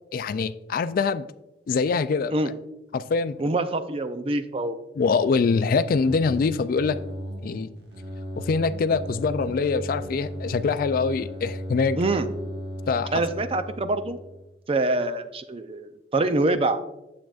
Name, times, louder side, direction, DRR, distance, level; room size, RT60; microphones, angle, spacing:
voice 1, 0.1-1.3 1.7-2.4 2.9-3.4 5.0-7.0 7.4-7.7 8.4-12.0 12.9-13.2, left 4 dB, 55° left, 13 dB, 0.3 m, -24 dB
voice 2, 3.4-4.8 12.0-12.3 13.1-14.2 14.7-16.8, right 2 dB, 30° right, 11 dB, 0.5 m, -25 dB
sound 1, 5.9-14.5, equal, 65° right, 1.3 m, -36 dB
9.2 x 7.5 x 2.4 m, 0.94 s
head